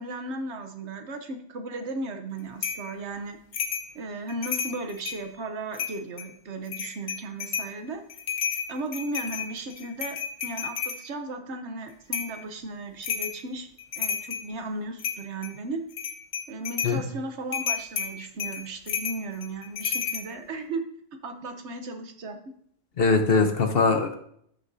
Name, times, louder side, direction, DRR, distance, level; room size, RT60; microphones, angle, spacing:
voice 1, 0.0-3.4 3.9-8.0 8.7-13.7 14.0-15.8 16.5-20.8 21.2-22.4, right 2 dB, 75° right, 6 dB, 1.2 m, -35 dB
sound 1, 2.6-2.9 3.5-3.9 4.3-5.2 5.7-6.3 6.7-7.7 8.1-11.0 12.1-12.4 13.0-13.4 13.8-14.5 15.0-15.5 15.9-17.0 17.5-20.3, left 7 dB, 85° left, 1.3 m, -31 dB
voice 2, 23.0-24.2, left 4 dB, 60° left, 7 dB, 1.1 m, -21 dB
13.5 x 6.7 x 2.7 m, 0.67 s
omnidirectional pair, 1.2 m